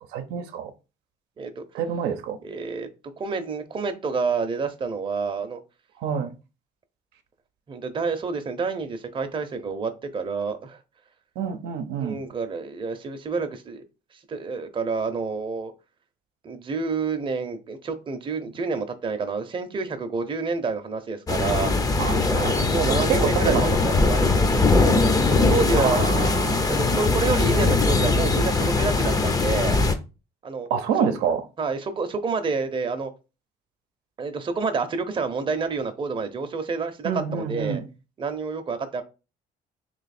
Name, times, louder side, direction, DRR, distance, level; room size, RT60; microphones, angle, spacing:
voice 1, 0.1-0.7 1.7-2.4 6.0-6.4 11.4-12.2 22.0-23.9 25.8-26.7 30.7-31.4 37.0-37.9, right 7 dB, 90° right, 0.7 m, -27 dB
voice 2, 2.4-2.9 3.2-5.6 7.7-10.8 12.0-13.8 14.3-15.7 16.4-21.7 22.2-26.2 26.7-29.8 30.4-30.7 31.0-31.1 31.6-33.1 34.2-37.8 38.2-39.0, right 4 dB, 30° right, 0.7 m, -28 dB
sound 1, 21.3-29.9, left 3 dB, 20° left, 0.6 m, -21 dB
3.1 x 3.0 x 4.2 m
cardioid pair, 110°, 17 cm